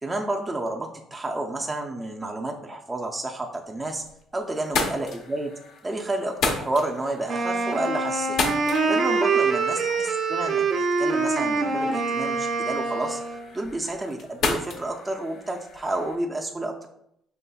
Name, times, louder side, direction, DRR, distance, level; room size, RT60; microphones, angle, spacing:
voice 1, 0.0-4.0 4.3-5.5 5.8-8.4 8.8-13.2 13.5-16.9, right 2 dB, 15° right, 1 dB, 0.4 m, -30 dB
sound 1, 3.7-4.2 4.5-16.2, left 4 dB, 65° left, 0.7 m, -34 dB
Wind instrument woodwind instrument, 7.3-13.5, right 4 dB, 55° right, 0.7 m, -25 dB
5.5 x 3.0 x 2.3 m, 0.74 s
cardioid pair, 95°, 0 cm